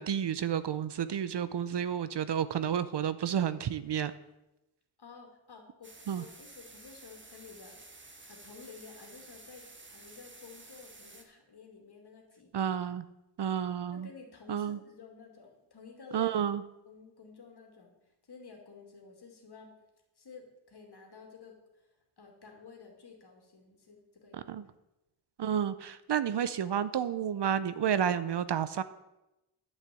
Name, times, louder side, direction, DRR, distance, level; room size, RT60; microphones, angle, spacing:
voice 1, 0.0-4.1 6.1-6.2 12.5-13.0 13.4-14.1 14.5-14.8 16.1-16.6 24.3-24.7 25.4-28.8, right 8 dB, 55° right, 14 dB, 0.6 m, -31 dB
voice 2, 5.0-7.8 8.3-12.7 13.5-13.6 13.9-16.4 16.9-17.9 18.2-19.8 20.2-21.6 22.2-24.8, left 5 dB, 50° left, 2 dB, 2.5 m, -52 dB
sound 1, 5.8-11.2, right 2 dB, 25° right, 1.2 m, -52 dB
10.5 x 6.5 x 8.4 m, 0.94 s
wide cardioid pair, 155°, 50 cm